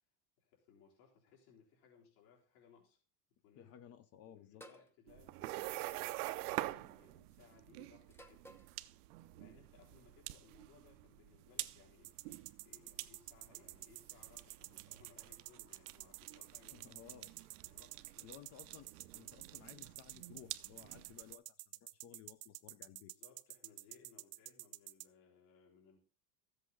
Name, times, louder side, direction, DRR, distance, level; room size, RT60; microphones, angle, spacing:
voice 1, 0.4-3.0 3.4-3.7 4.2-8.5 9.4-12.1 12.6-17.2 17.6-18.4 22.9-26.0, left 7 dB, 70° left, 4.0 m, -65 dB
voice 2, 3.5-4.6 16.7-17.3 18.2-21.5 21.7-23.1, left 10 dB, 35° left, 0.5 m, -57 dB
sound 1, 4.6-4.9 6.1-6.5 8.1-8.8, right 1 dB, 5° left, 0.9 m, -57 dB
sound 2, 5.1-21.3, right 17 dB, 80° right, 0.8 m, -47 dB
sound 3, 12.0-25.1, right 21 dB, 45° right, 0.5 m, -49 dB
13.5 x 8.1 x 3.8 m
supercardioid pair, 140°, 45 cm